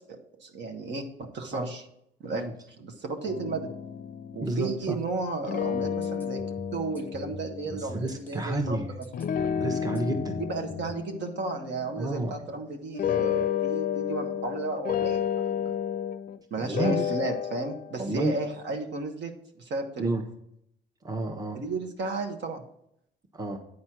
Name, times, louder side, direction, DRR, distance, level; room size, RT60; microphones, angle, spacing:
voice 1, 0.1-1.8 2.2-2.5 2.8-3.7 4.3-8.8 10.4-15.8 16.5-20.2 21.5-22.6, right 3 dB, 65° right, 3 dB, 1.4 m, -34 dB
sound 1, 3.3-5.1 5.4-7.9 9.1-12.5 12.9-16.4 16.7-18.0, left 9 dB, 45° left, 0.5 m, -31 dB
voice 2, 4.4-5.0 7.7-8.9 9.6-10.4 12.0-12.4 16.6-17.1 18.0-18.4 20.0-20.2 21.0-21.6 23.3-23.6, right 2 dB, 20° right, 5 dB, 1.2 m, -30 dB
sound 2, 5.7-11.0, left 3 dB, 10° left, 0.8 m, -44 dB
9.4 x 4.3 x 6.2 m, 0.75 s
cardioid pair, 90°, 20 cm